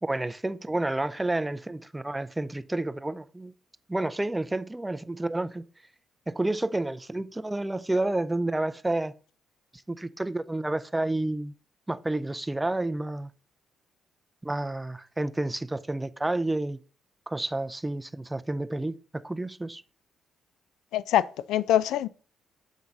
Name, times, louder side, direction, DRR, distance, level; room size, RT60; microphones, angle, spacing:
voice 1, 0.0-3.5 3.9-5.6 6.3-9.1 9.9-11.5 11.9-13.3 14.4-16.8 17.3-19.8, right 2 dB, 10° right, 0.5 m, -30 dB
voice 2, 20.9-22.1, left 11 dB, 85° left, 0.3 m, -24 dB
7.2 x 3.7 x 5.3 m
cardioid pair, 90°, 0 cm